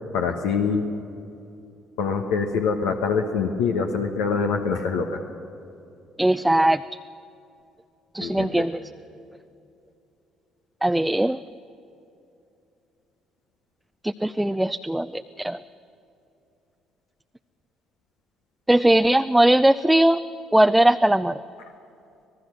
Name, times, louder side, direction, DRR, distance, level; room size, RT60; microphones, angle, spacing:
voice 1, 0.1-0.8 2.0-5.2 8.2-8.7, left 5 dB, 70° left, 4 dB, 1.2 m, -24 dB
voice 2, 6.2-6.8 8.1-8.8 10.8-11.4 14.0-15.6 18.7-20.2 20.5-21.4, right 1 dB, 5° right, 11 dB, 0.5 m, -19 dB
25.5 x 18.5 x 6.5 m, 2.7 s
hypercardioid pair, 50°, 0 cm